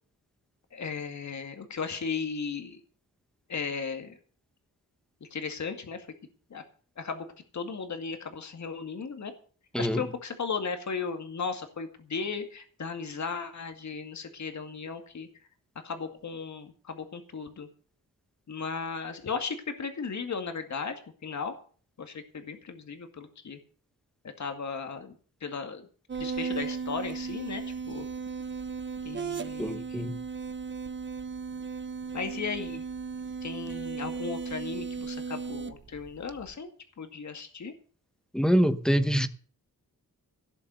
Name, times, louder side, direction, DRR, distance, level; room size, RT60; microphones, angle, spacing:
voice 1, 0.7-2.8 3.5-4.2 5.2-6.1 6.5-6.6 7.0-7.3 7.5-9.3 9.8-15.3 15.8-17.7 18.5-21.5 22.0-23.6 24.4-25.1 25.4-25.9 26.2-28.1 29.0-30.0 32.1-32.8 33.4-36.7 37.0-37.7, left 5 dB, 55° left, 2.2 m, -36 dB
sound 1, 26.1-36.5, right 5 dB, 35° right, 0.9 m, -36 dB
voice 2, 29.6-30.2 38.3-39.3, equal, ahead, 1.1 m, -25 dB
17.0 x 7.2 x 7.0 m
wide cardioid pair, 160°, 34 cm